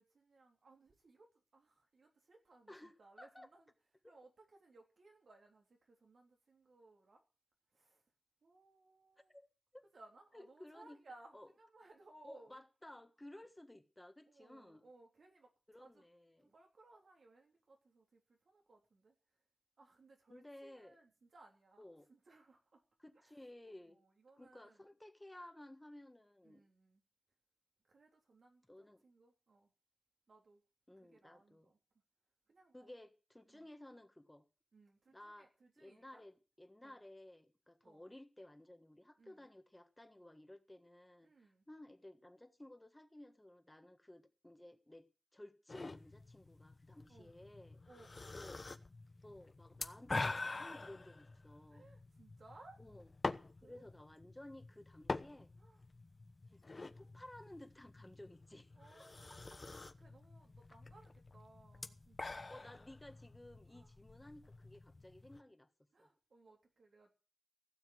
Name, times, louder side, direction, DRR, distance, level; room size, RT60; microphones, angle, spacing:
voice 1, 0.0-3.7 4.0-7.2 7.7-8.0 8.4-9.4 9.9-12.6 14.3-16.0 16.4-19.4 19.8-21.8 22.1-22.8 23.2-24.8 26.4-27.0 27.9-29.7 30.3-30.6 31.0-31.8 32.5-32.9 33.5-33.7 34.7-36.2 36.8-37.0 37.8-38.1 39.2-39.5 41.2-41.6 47.1-47.3 47.9-48.4 51.7-52.8 53.3-53.8 55.6-55.8 58.7-62.7 63.7-63.9 65.9-67.1, right 2 dB, 85° right, 3.5 m, -64 dB
voice 2, 2.7-3.5 4.0-4.1 9.3-9.8 10.3-11.0 11.3-11.5 12.2-14.8 15.7-16.5 20.3-21.0 21.8-22.1 23.0-24.0 24.4-26.6 28.7-29.0 30.9-31.7 32.7-34.4 35.1-35.5 35.8-41.3 41.7-45.1 45.3-47.8 48.3-48.6 49.2-51.9 52.8-53.1 53.6-55.5 56.5-58.7 59.3-59.6 62.5-65.7 66.0-66.1, left 1 dB, 15° left, 1.5 m, -56 dB
sound 1, 45.7-65.4, left 3 dB, 45° left, 1.0 m, -47 dB
15.5 x 7.2 x 7.8 m
wide cardioid pair, 75°, 0 cm